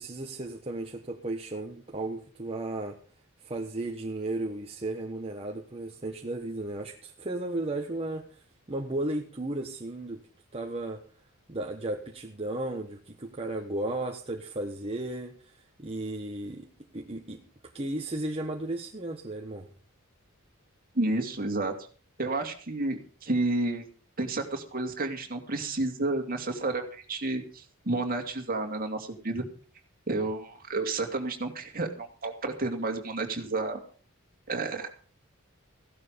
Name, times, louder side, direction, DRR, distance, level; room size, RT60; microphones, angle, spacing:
voice 1, 0.0-3.0 3.4-10.2 10.5-11.0 11.5-16.7 16.9-17.4 17.7-19.7, right 2 dB, 25° right, 2 dB, 1.4 m, -34 dB
voice 2, 20.9-21.7 22.2-23.9 24.2-29.4 30.1-33.8 34.5-34.9, right 2 dB, 40° right, 4 dB, 2.7 m, -31 dB
16.0 x 12.0 x 5.2 m, 0.40 s
head